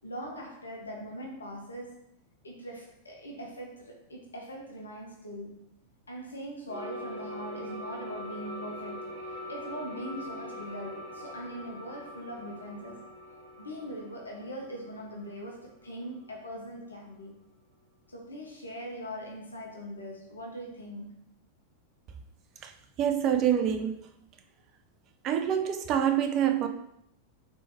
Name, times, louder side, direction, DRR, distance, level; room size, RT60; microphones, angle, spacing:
voice 1, 0.0-2.1 2.4-5.6 6.1-13.1 13.6-17.4 18.1-21.2, equal, 75° left, 0.6 m, -41 dB
sound 1, 6.7-16.6, left 1 dB, 65° right, 1.5 m, -43 dB
voice 2, 22.6-24.1 25.2-26.7, right 9 dB, 35° right, 0.4 m, -26 dB
3.1 x 3.0 x 2.8 m
figure-of-eight pair, 90°, 0 cm